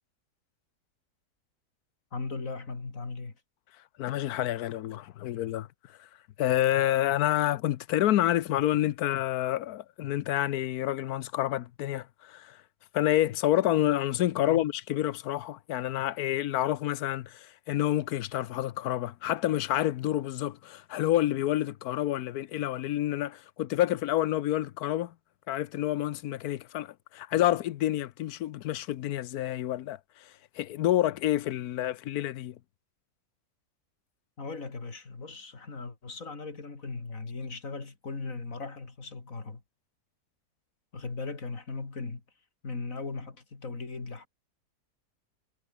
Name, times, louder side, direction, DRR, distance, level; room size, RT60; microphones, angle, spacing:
voice 1, 2.1-3.3 14.4-14.7 34.4-39.6 40.9-42.2 42.6-44.3, left 4 dB, 50° left, 3.4 m, -38 dB
voice 2, 4.0-6.1 6.4-12.6 12.9-25.1 25.5-32.6, left 13 dB, 70° left, 1.1 m, -28 dB
omnidirectional pair, 1.8 m